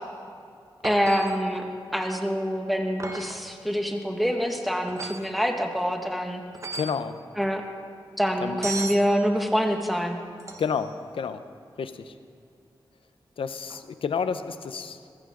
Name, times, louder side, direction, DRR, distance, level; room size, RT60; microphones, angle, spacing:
voice 1, 0.8-1.6 1.9-6.4 7.4-7.7 8.2-10.2, equal, ahead, 3 dB, 1.7 m, -26 dB
sound 1, 0.8-1.5 3.0-3.5 4.9-5.3 6.5-7.0 8.6-9.1 10.4-10.9 13.7-13.8, right 3 dB, 35° right, 1.1 m, -36 dB
voice 2, 6.7-7.2 8.4-8.6 10.6-11.4 11.8-12.1 13.4-15.0, left 6 dB, 90° left, 11 dB, 0.7 m, -30 dB
19.5 x 14.5 x 3.8 m, 2.4 s
cardioid pair, 70°, 9 cm